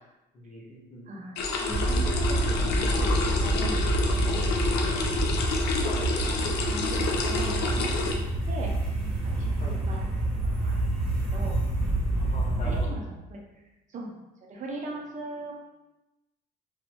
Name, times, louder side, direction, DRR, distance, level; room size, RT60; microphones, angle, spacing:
voice 1, 0.3-1.0 5.8-6.1 9.6-9.8 12.2-12.9, left 1 dB, 40° left, -3 dB, 1.0 m, -41 dB
voice 2, 1.1-3.8 4.2-4.4 4.8-5.1 6.7-8.2 8.5-8.7 9.2-10.0 10.4-10.8 11.3-11.6 12.7-13.4 13.9-14.1 14.5-15.5, right 2 dB, 45° right, 0 dB, 0.7 m, -39 dB
sound 1, 1.4-8.1, left 3 dB, 75° left, 0.6 m, -29 dB
sound 2, 1.7-12.9, right 1 dB, ahead, 1.1 m, -27 dB
3.1 x 2.7 x 3.1 m, 0.98 s
cardioid pair, 110°, 17 cm